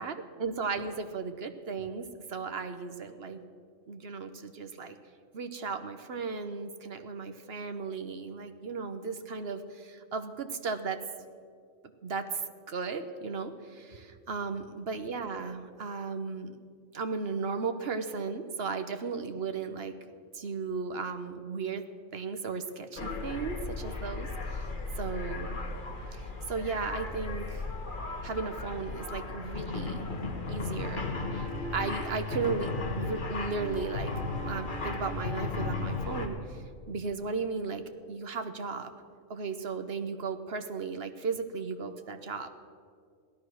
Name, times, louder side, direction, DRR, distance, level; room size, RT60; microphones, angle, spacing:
voice 1, 0.0-3.4 3.9-5.0 5.3-11.0 12.0-12.4 12.7-16.6 16.9-19.9 20.3-21.8 22.1-25.6 26.1-27.7 28.2-30.1 30.4-32.7 33.0-34.1 34.4-37.8 38.1-38.9 39.3-42.5, right 4 dB, 50° right, 8 dB, 1.2 m, -35 dB
sound 1, 23.0-36.3, left 3 dB, 40° left, 1.5 m, -35 dB
16.5 x 13.0 x 6.4 m, 2.2 s
omnidirectional pair, 1.4 m